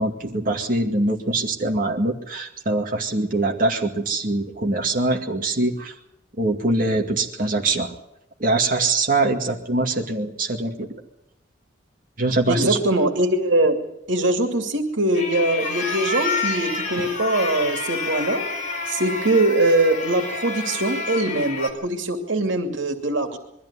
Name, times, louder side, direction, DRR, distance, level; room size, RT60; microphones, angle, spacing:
voice 1, 0.0-5.9 6.4-7.9 8.4-10.9 12.2-12.8, right 2 dB, 50° right, 1 dB, 2.2 m, -23 dB
voice 2, 12.5-13.8 14.1-18.5 18.9-23.4, right 2 dB, 90° right, 5 dB, 2.6 m, -22 dB
sound 1, 15.1-21.7, left 4 dB, 40° left, 3.9 m, -29 dB
22.0 x 14.0 x 9.8 m, 0.82 s
head